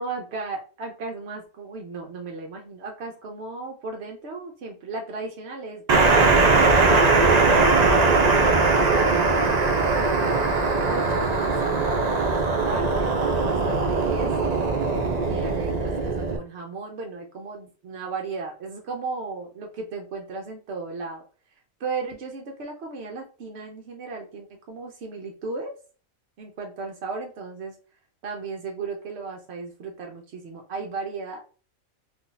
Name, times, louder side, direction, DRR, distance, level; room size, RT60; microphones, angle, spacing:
voice 1, 0.0-6.4 6.9-7.5 8.3-14.7 15.3-21.2 21.8-25.7 26.4-27.8 28.2-31.4, right 3 dB, 60° right, 1 dB, 0.8 m, -35 dB
sound 1, 5.9-16.4, right 3 dB, 80° right, 0.3 m, -20 dB
2.6 x 2.5 x 3.8 m, 0.38 s
omnidirectional pair, 1.5 m